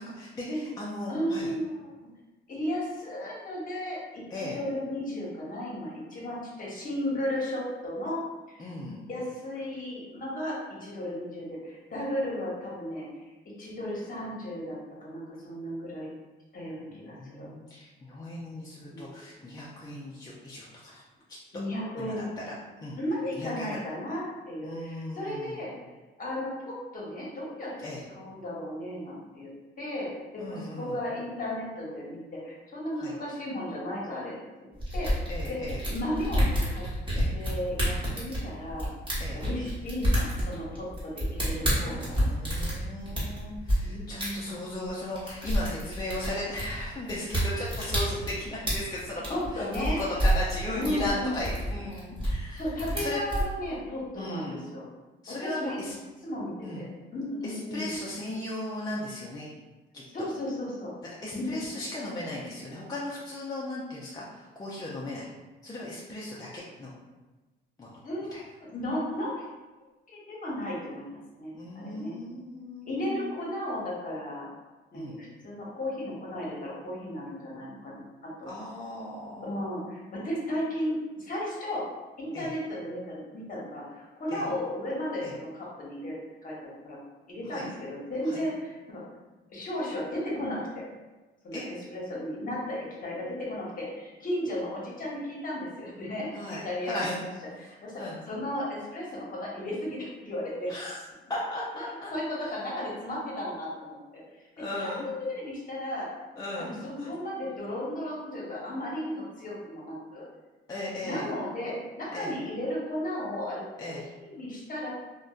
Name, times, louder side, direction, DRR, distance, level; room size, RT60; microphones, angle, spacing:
voice 1, 0.0-1.5 4.3-4.6 8.6-9.0 16.9-21.0 22.0-22.5 22.8-23.0 23.3-23.8 24.6-25.6 27.8-28.0 30.4-31.0 33.0-33.1 35.3-35.8 37.2-37.3 39.2-39.4 41.6-49.7 50.0-53.2 54.1-54.6 55.2-55.9 56.6-56.9 57.4-59.5 59.9-60.0 61.0-65.3 65.6-66.9 67.8-68.0 68.3-68.4 71.5-73.5 74.9-75.2 78.5-79.5 82.3-82.5 84.3-84.5 85.2-85.4 87.4-87.7 88.2-88.4 91.5-91.7 96.3-97.2 97.6-98.2 100.7-101.0 101.3-102.1 102.4-102.5 104.6-105.1 106.4-107.1 110.7-111.3 112.1-112.4 113.8-114.0, left 1 dB, 20° left, -6 dB, 0.4 m, -37 dB
voice 2, 1.1-1.9 2.5-8.2 8.5-8.7 9.1-13.3 13.6-16.1 16.5-17.5 18.9-19.1 19.4-19.5 21.5-22.3 22.9-25.7 26.2-27.7 28.1-29.5 29.8-34.3 34.9-35.6 35.9-36.8 37.3-38.9 39.3-42.0 43.8-44.7 49.3-50.0 50.7-51.4 52.5-54.9 55.3-55.8 56.2-56.8 57.1-57.9 60.1-60.9 61.3-61.5 68.0-68.3 68.6-69.5 70.1-72.2 72.9-74.5 74.9-78.5 79.4-81.9 82.2-86.5 86.8-87.0 87.3-89.0 89.5-90.9 91.4-97.3 97.6-97.9 98.3-100.7 102.1-104.5 104.8-106.1 106.6-110.3 111.0-114.9, left 1 dB, 45° left, -5 dB, 0.9 m, -34 dB
sound 1, 34.8-43.8 44.2-44.3 44.7-44.9 45.2-53.5, equal, 25° right, 1.2 m, -28 dB
2.6 x 2.1 x 2.3 m, 1.2 s
cardioid pair, 90°, 20 cm